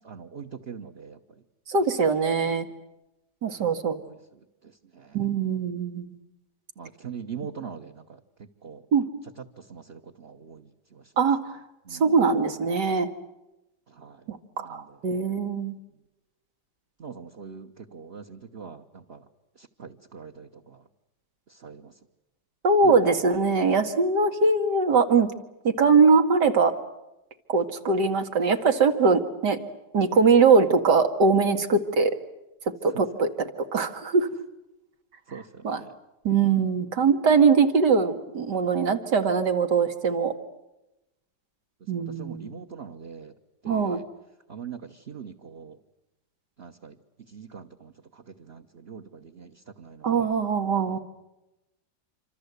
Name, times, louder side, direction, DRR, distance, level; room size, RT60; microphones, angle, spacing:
voice 1, 0.0-1.2 3.8-4.1 4.6-5.2 6.8-8.8 9.6-11.0 11.8-12.2 13.9-14.2 14.6-15.0 17.0-19.2 19.6-20.8 21.5-21.9 22.8-23.0 35.3-35.9 36.6-36.7 41.9-43.3 43.6-44.0 44.5-45.8 46.6-47.0 47.3-50.3 50.9-51.0, right 6 dB, 40° right, 2 dB, 1.3 m, -42 dB
voice 2, 1.7-2.7 3.4-4.0 5.1-6.2 8.9-9.1 11.2-11.6 11.9-13.1 14.3-15.8 22.6-25.3 25.6-26.7 27.5-29.6 29.9-32.1 32.8-34.3 35.6-35.8 36.2-40.3 41.9-42.5 43.7-44.0 50.0-51.0, right 4 dB, 80° right, 7 dB, 2.5 m, -22 dB
27.0 x 26.5 x 8.2 m, 0.96 s
omnidirectional pair, 1.8 m